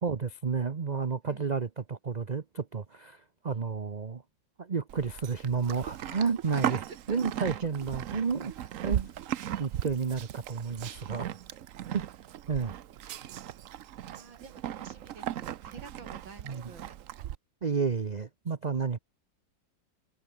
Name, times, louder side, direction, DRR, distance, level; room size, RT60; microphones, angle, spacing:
voice 1, 0.0-4.2 4.6-6.8 7.1-9.1 9.6-11.3 11.9-12.0 12.5-12.7 16.4-16.6 17.6-19.0, right 5 dB, 40° right, 0.6 m, -31 dB
Livestock farm animals working animals, 4.9-17.4, right 11 dB, 65° right, 0.8 m, -37 dB
voice 2, 7.1-7.5 11.9-12.0 14.1-16.9, right 4 dB, 85° right, 4.1 m, -50 dB
omnidirectional pair, 2.0 m